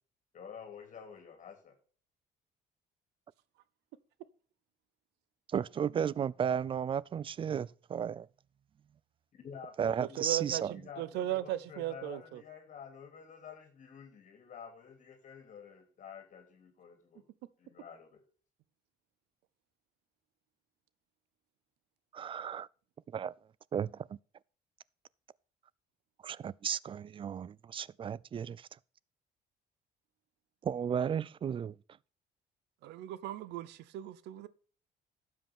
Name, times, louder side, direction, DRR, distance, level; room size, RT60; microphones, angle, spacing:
voice 1, 0.3-1.8 9.3-10.3 10.7-17.3 17.6-18.2, left 7 dB, 50° left, 2.8 m, -50 dB
voice 2, 5.5-8.3 9.8-10.7 22.1-22.7 23.1-23.3 23.7-24.2 26.2-28.7 30.6-31.8, right 8 dB, 30° right, 0.4 m, -34 dB
voice 3, 10.0-12.4 32.8-34.5, right 14 dB, 85° right, 0.8 m, -37 dB
12.5 x 7.9 x 3.6 m
cardioid pair, 110°, 17 cm